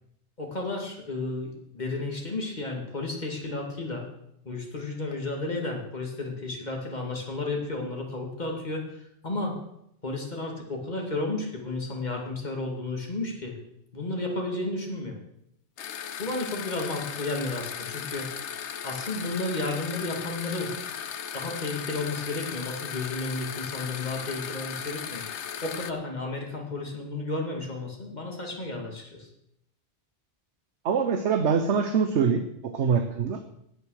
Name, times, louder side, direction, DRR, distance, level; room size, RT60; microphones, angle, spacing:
voice 1, 0.4-4.0 4.4-8.8 9.2-9.6 10.0-13.6 13.9-15.2 16.2-18.3 18.8-20.7 21.3-25.2 25.6-29.3, left 2 dB, 40° left, 1 dB, 2.6 m, -32 dB
sound 1, 15.8-25.9, left 8 dB, 90° left, 1.1 m, -36 dB
voice 2, 30.8-33.4, right 6 dB, 80° right, 7 dB, 1.2 m, -24 dB
17.0 x 6.6 x 6.5 m, 0.77 s
omnidirectional pair, 1.1 m